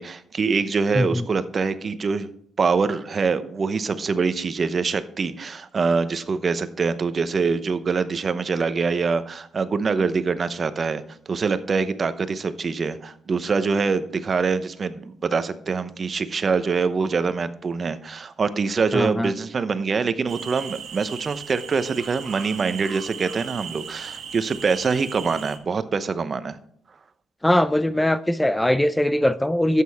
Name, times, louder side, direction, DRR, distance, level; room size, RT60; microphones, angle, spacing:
voice 1, 0.0-2.3 2.6-11.0 11.3-26.6, right 5 dB, 40° right, 0.9 m, -24 dB
voice 2, 0.9-1.2 18.9-19.3 27.4-29.8, left 1 dB, 10° left, 0.4 m, -21 dB
sound 1, 20.3-25.6, right 7 dB, 65° right, 1.9 m, -37 dB
12.0 x 8.5 x 3.5 m
cardioid pair, 90°, 0 cm